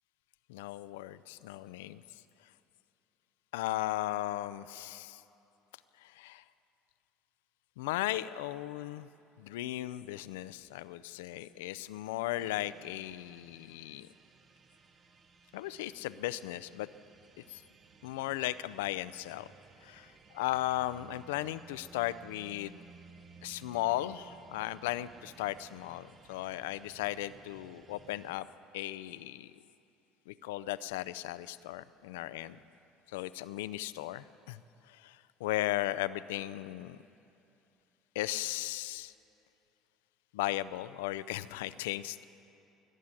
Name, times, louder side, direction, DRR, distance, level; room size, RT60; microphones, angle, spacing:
voice 1, 0.5-2.0 3.5-5.2 6.0-6.4 7.8-9.1 9.4-14.1 15.5-16.9 17.5-17.6 18.0-19.5 19.8-22.8 23.4-28.5 28.7-29.5 30.3-32.6 33.1-34.6 34.9-37.0 38.1-39.1 40.3-42.2, left 15 dB, 80° left, 15 dB, 0.4 m, -36 dB
sound 1, 12.4-28.4, right 4 dB, 40° right, 0.9 m, -58 dB
18.5 x 7.5 x 9.8 m, 2.8 s
hypercardioid pair, 70°, 0 cm